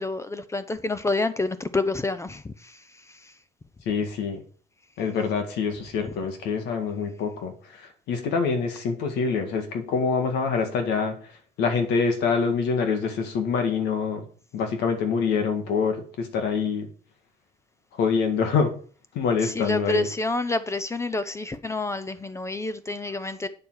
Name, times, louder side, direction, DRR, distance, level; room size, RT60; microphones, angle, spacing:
voice 1, 0.0-2.8 3.2-3.3 19.4-23.5, left 2 dB, 15° left, 0.6 m, -28 dB
voice 2, 3.9-4.4 5.0-11.3 11.6-14.3 14.5-16.9 18.0-18.7 19.1-20.1, left 5 dB, 85° left, 2.0 m, -25 dB
8.6 x 6.8 x 4.8 m
cardioid pair, 110°, 17 cm